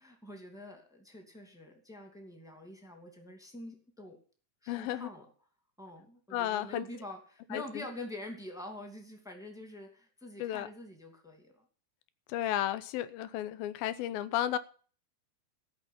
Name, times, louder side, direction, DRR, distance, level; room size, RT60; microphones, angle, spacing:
voice 1, 0.0-4.2 4.6-5.3 5.8-11.6, left 1 dB, ahead, 3 dB, 1.6 m, -46 dB
voice 2, 4.7-5.1 6.3-6.9 7.5-7.9 10.4-10.7 12.3-14.6, left 12 dB, 85° left, 14 dB, 2.6 m, -33 dB
14.5 x 6.2 x 8.5 m, 0.42 s
omnidirectional pair, 4.2 m